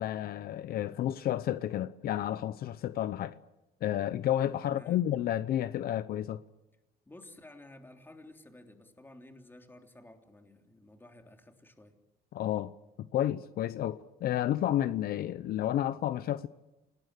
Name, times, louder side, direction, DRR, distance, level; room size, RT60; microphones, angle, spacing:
voice 1, 0.0-3.4 3.8-6.4 12.3-12.7 13.0-16.5, left 12 dB, 65° left, 0.8 m, -31 dB
voice 2, 4.6-5.0 7.1-11.9, left 2 dB, 10° left, 3.5 m, -53 dB
28.0 x 19.0 x 8.2 m
cardioid pair, 110°, 17 cm